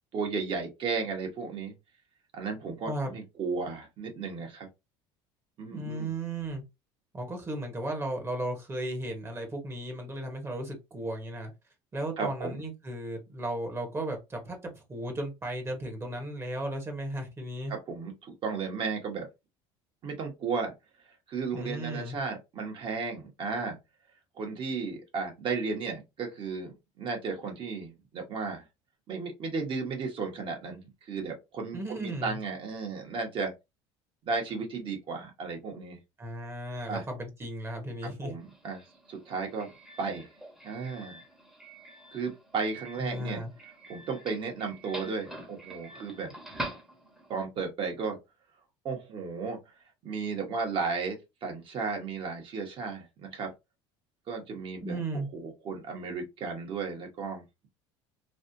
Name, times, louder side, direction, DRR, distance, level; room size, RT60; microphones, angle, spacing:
voice 1, 0.1-1.7 2.3-4.7 5.6-6.1 12.2-12.6 17.7-18.1 18.4-19.3 20.0-20.7 21.3-23.8 24.4-28.6 29.1-33.5 34.2-36.0 36.9-37.0 38.0-38.8 39.1-39.7 40.0-40.3 40.6-41.2 42.1-43.4 43.9-46.3 47.3-48.2 48.8-49.6 50.0-51.2 51.4-53.5 54.3-55.0 55.3-57.4, right 4 dB, 45° right, 1.4 m, -34 dB
voice 2, 2.8-3.1 5.7-6.6 7.1-11.5 11.9-17.7 21.5-22.2 31.7-32.4 36.2-38.3 43.0-43.5 54.8-55.3, right 1 dB, 20° right, 1.2 m, -35 dB
Doorbell, 38.4-47.4, right 1 dB, 5° right, 1.1 m, -45 dB
3.3 x 2.5 x 2.7 m
cardioid pair, 115°, 12 cm